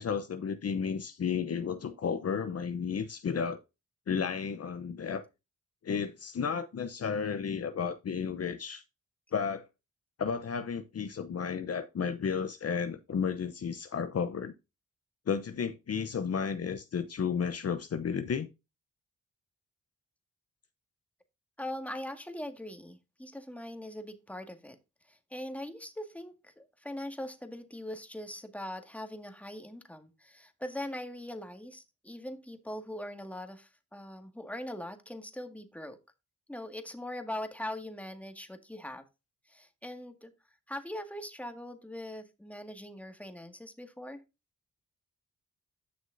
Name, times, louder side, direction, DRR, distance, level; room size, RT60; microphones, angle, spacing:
voice 1, 0.0-3.6 4.1-5.2 5.8-8.8 9.3-9.6 10.2-14.5 15.3-18.5, left 6 dB, 50° left, 0.8 m, -33 dB
voice 2, 21.6-24.8 25.1-36.0 36.5-39.0 39.5-40.3 40.7-44.2, left 1 dB, 5° left, 1.9 m, -41 dB
11.0 x 6.2 x 2.6 m
cardioid pair, 65°, 31 cm